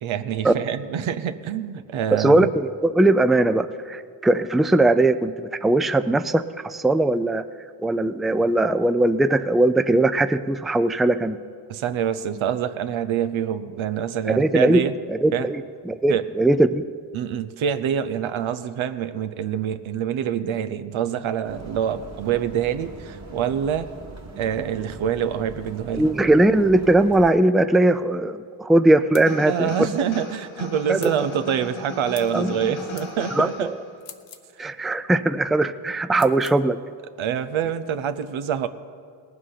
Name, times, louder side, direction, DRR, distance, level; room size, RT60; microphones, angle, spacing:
voice 1, 0.0-2.5 11.7-14.9 15.3-15.5 16.1-16.3 17.1-23.9 24.4-26.0 29.4-33.7 37.2-38.7, right 9 dB, 75° right, 11 dB, 0.8 m, -26 dB
voice 2, 2.2-7.4 7.8-11.4 14.2-14.8 15.1-16.9 25.9-29.9 30.9-31.1 32.3-32.7 33.4-33.8 34.6-36.8, right 2 dB, ahead, 11 dB, 0.4 m, -20 dB
sound 1, 21.4-27.3, right 3 dB, 35° right, 1.8 m, -41 dB
sound 2, 29.1-29.3 31.0-31.2 32.1-32.4 33.0-33.1 34.0-34.5 36.1-36.6, left 8 dB, 60° left, 0.9 m, -43 dB
sound 3, 29.2-34.0, left 2 dB, 80° left, 2.3 m, -36 dB
18.5 x 7.6 x 5.8 m, 2.2 s
supercardioid pair, 50°, 47 cm